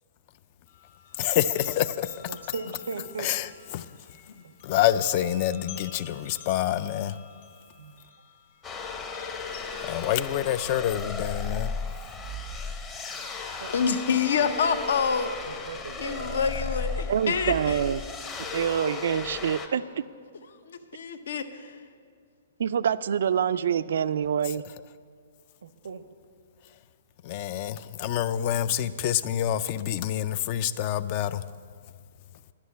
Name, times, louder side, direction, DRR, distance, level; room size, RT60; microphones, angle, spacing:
sound 1, 0.7-9.7, left 7 dB, 55° left, 1.7 m, -50 dB
voice 1, 1.2-2.1 3.2-3.9 4.6-7.2 9.8-11.7 27.2-31.4, left 11 dB, 35° left, 0.3 m, -27 dB
voice 2, 2.3-3.3 4.4-4.5 7.8-7.9 11.1-11.2 13.6-13.7 15.4-16.4 25.6-26.0, right 4 dB, 90° right, 0.7 m, -38 dB
sound 2, 8.6-19.7, left 4 dB, 15° left, 0.7 m, -35 dB
voice 3, 13.7-15.3 16.0-17.8 20.7-21.8, left 6 dB, 70° left, 0.8 m, -27 dB
voice 4, 17.1-18.0 18.5-19.8 22.6-24.6, right 8 dB, 70° right, 0.3 m, -26 dB
11.5 x 6.3 x 8.3 m
hypercardioid pair, 160°, 0 cm